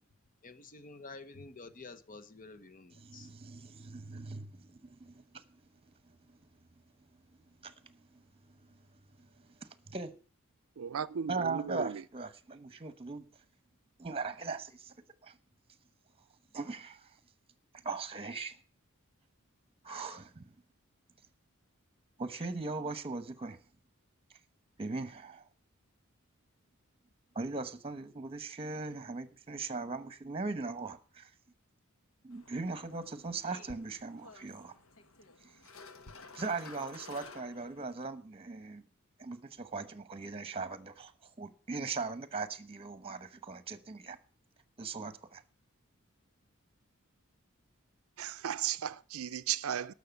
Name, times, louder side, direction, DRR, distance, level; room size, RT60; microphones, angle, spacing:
voice 1, 0.4-3.3, left 3 dB, 40° left, 1.0 m, -50 dB
voice 2, 3.0-5.4 5.8-5.9 7.6-8.2 9.2-10.1 11.3-13.2 14.0-14.9 15.2-15.4 16.5-17.2 17.8-18.6 19.8-20.5 22.2-23.6 24.8-25.4 27.3-31.3 32.2-34.8 35.4-35.5 36.3-38.8 39.2-44.2 44.8-45.4, right 3 dB, 30° right, 1.1 m, -39 dB
voice 3, 10.8-12.0 48.2-49.9, right 9 dB, 85° right, 0.5 m, -35 dB
sound 1, 32.3-38.1, left 4 dB, 70° left, 1.3 m, -53 dB
12.5 x 6.6 x 8.2 m
head